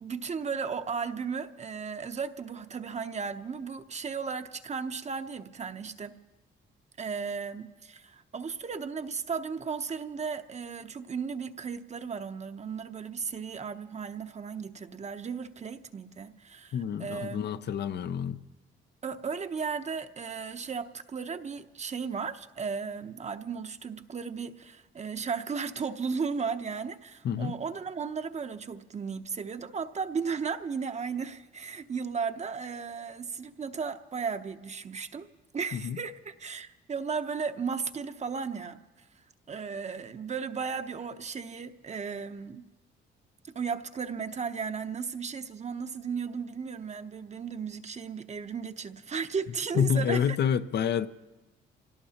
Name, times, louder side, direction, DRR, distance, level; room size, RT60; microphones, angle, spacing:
voice 1, 0.0-6.1 7.0-17.6 19.0-35.3 35.5-38.8 39.5-42.6 43.5-50.4, right 5 dB, 35° right, 0.8 m, -35 dB
voice 2, 16.7-18.4 27.2-27.5 35.7-36.0 49.8-51.1, left 8 dB, 60° left, 0.6 m, -28 dB
26.5 x 17.5 x 2.9 m
cardioid pair, 90°, 20 cm